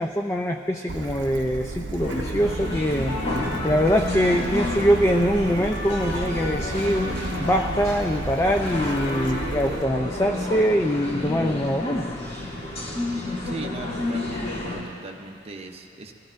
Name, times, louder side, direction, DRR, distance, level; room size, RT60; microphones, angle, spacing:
voice 1, 0.0-3.2 3.6-12.1, equal, 15° left, 3 dB, 0.4 m, -23 dB
Bird / Stream, 0.9-9.8, right 2 dB, 80° right, 0.6 m, -33 dB
sound 1, 2.0-14.8, left 2 dB, 55° left, 2.6 m, -31 dB
sound 2, 2.5-9.5, left 2 dB, 85° left, 2.2 m, -37 dB
voice 2, 13.4-16.1, right 2 dB, 35° right, 3 dB, 0.7 m, -38 dB
22.0 x 14.0 x 2.5 m, 2.5 s
head